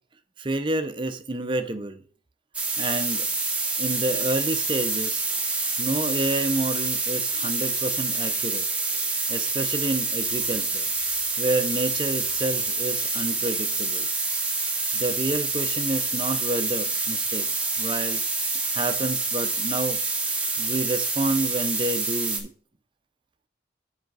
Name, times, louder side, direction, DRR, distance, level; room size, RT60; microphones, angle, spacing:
voice 1, 0.4-2.0 2.8-3.3 3.8-5.3 5.8-8.7 9.3-10.9 11.4-14.1 14.9-18.2 18.7-20.0 20.6-22.5, right 2 dB, 30° right, 0.5 m, -29 dB
sound 1, 2.5-22.4, right 3 dB, 5° right, 1.0 m, -27 dB
7.8 x 4.8 x 4.6 m
head